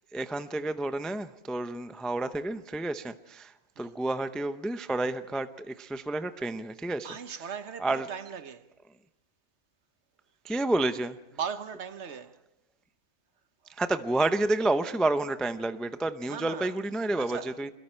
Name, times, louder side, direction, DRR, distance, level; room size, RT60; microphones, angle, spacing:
voice 1, 0.1-7.1 7.8-8.1 10.4-11.2 13.7-17.7, right 2 dB, ahead, 0.4 m, -30 dB
voice 2, 7.0-8.7 11.4-12.4 13.6-13.8 16.3-16.8 17.1-17.7, right 7 dB, 60° right, 1.2 m, -38 dB
27.0 x 22.0 x 4.5 m
omnidirectional pair, 1.3 m